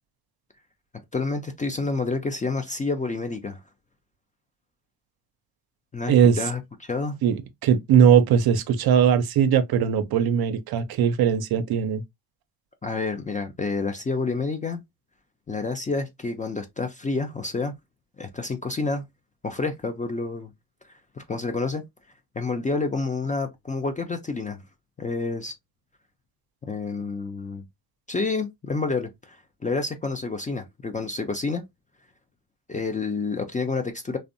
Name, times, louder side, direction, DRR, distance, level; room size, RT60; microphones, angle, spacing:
voice 1, 1.1-3.6 5.9-7.2 12.8-14.8 15.5-17.7 18.2-19.1 19.4-20.5 21.2-21.8 22.4-24.6 25.0-25.5 26.7-27.6 28.1-29.4 29.6-31.6 32.7-34.2, left 3 dB, 20° left, 0.4 m, -29 dB
voice 2, 6.1-6.4 7.2-12.0, right 8 dB, 55° right, 0.5 m, -20 dB
2.5 x 2.1 x 2.5 m
supercardioid pair, 60°, 47 cm